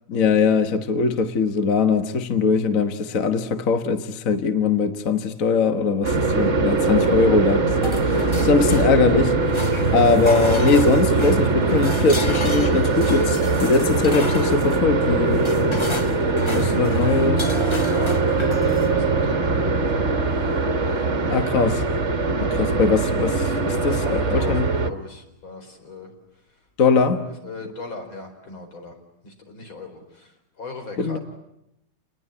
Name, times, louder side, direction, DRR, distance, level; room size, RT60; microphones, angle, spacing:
voice 1, 0.1-8.1 8.4-9.6 9.9-15.9 16.5-17.5 21.3-21.8 22.4-24.7 26.8-27.3 31.0-31.2, left 4 dB, 45° left, 1.6 m, -21 dB
sound 1, 6.0-24.9, right 3 dB, 35° right, 1.7 m, -21 dB
voice 2, 6.8-7.4 8.1-8.7 16.4-16.8 17.8-21.4 22.2-26.1 26.9-29.0 29.2-31.2, left 2 dB, 80° left, 5.2 m, -37 dB
sound 2, 7.8-9.2 9.5-18.9, left 2 dB, 25° left, 0.7 m, -34 dB
29.0 x 20.5 x 9.9 m
omnidirectional pair, 2.2 m